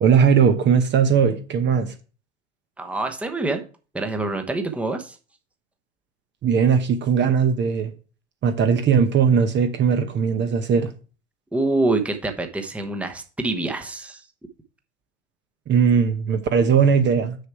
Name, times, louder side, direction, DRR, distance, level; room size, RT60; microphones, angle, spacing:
voice 1, 0.0-1.9 6.4-7.9 8.4-10.9 15.7-17.4, right 6 dB, 30° right, 0.9 m, -19 dB
voice 2, 2.8-3.6 3.9-5.2 11.5-14.2, right 2 dB, 5° right, 1.0 m, -26 dB
6.6 x 6.1 x 4.7 m
hypercardioid pair, 95°, 35 cm